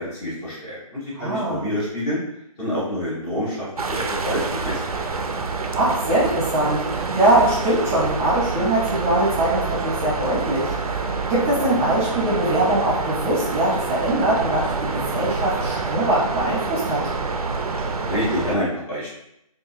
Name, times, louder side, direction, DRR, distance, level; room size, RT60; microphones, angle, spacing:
voice 1, 0.0-2.2 2.6-5.1 18.0-19.1, equal, 15° left, -9 dB, 1.1 m, -27 dB
voice 2, 1.1-1.6 5.7-10.7 11.3-17.0, right 1 dB, 25° right, -6 dB, 0.9 m, -22 dB
sound 1, 3.8-18.6, right 4 dB, 85° right, 0.5 m, -27 dB
3.6 x 2.3 x 2.7 m, 0.78 s
figure-of-eight pair, 150°, 18 cm